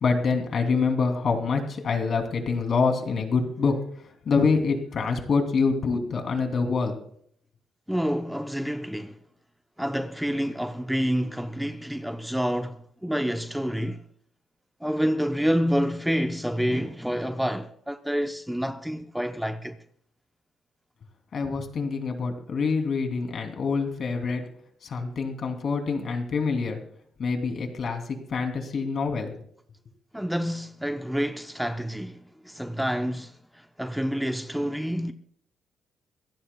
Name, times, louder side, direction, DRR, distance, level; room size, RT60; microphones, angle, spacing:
voice 1, 0.0-7.0 21.3-24.4 24.8-26.8 27.2-29.3, left 4 dB, 55° left, 2.9 m, -26 dB
voice 2, 7.9-9.2 9.8-14.0 14.8-19.8 30.1-35.1, equal, 5° right, 0.7 m, -28 dB
25.5 x 15.5 x 2.3 m
cardioid pair, 90°, 0 cm